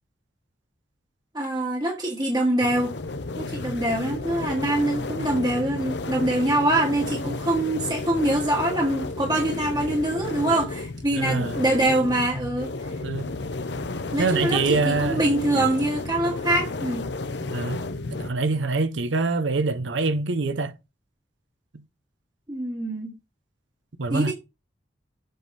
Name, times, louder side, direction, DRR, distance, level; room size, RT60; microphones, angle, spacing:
voice 1, 1.3-2.9 3.4-12.7 14.1-17.0 22.5-23.1 24.1-24.3, right 1 dB, 20° right, 1.3 m, -24 dB
sound 1, 2.6-18.3, left 2 dB, 70° left, 0.8 m, -32 dB
voice 2, 11.1-11.6 13.0-13.3 14.2-15.3 15.5-15.7 17.5-17.8 18.2-20.7 24.0-24.3, right 3 dB, 80° right, 0.7 m, -25 dB
7.9 x 5.1 x 4.1 m
head